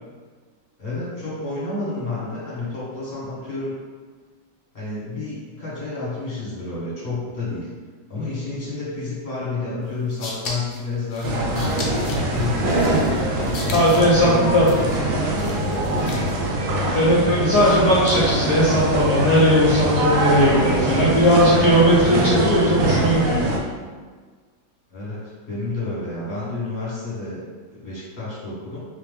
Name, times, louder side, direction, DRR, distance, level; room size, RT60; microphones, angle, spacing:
voice 1, 0.8-3.7 4.7-7.7 8.1-12.7 13.3-16.4 20.8-21.2 24.9-27.4 27.7-28.8, left 3 dB, 30° left, -8 dB, 1.5 m, -30 dB
sound 1, 9.9-16.5, left 3 dB, 85° left, 0.6 m, -37 dB
sound 2, 11.2-23.6, right 1 dB, 90° right, 1.5 m, -23 dB
voice 2, 13.7-14.7 16.9-23.4, equal, 60° left, -8 dB, 1.2 m, -18 dB
3.6 x 3.0 x 3.4 m, 1.5 s
omnidirectional pair, 2.1 m